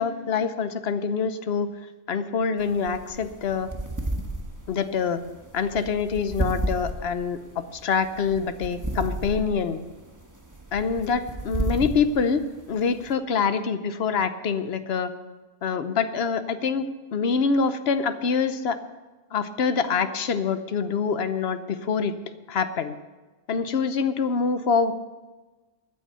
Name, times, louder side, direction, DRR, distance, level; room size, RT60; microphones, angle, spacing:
voice 1, 0.0-1.7 2.1-3.7 4.7-5.2 5.5-9.8 10.7-12.4 12.7-15.1 15.6-18.8 19.3-22.1 22.5-22.9 23.5-24.9, left 5 dB, 55° left, 11 dB, 1.0 m, -25 dB
sound 1, 2.6-13.1, right 1 dB, 15° right, 1.2 m, -33 dB
12.5 x 9.1 x 6.8 m, 1.2 s
omnidirectional pair, 1.3 m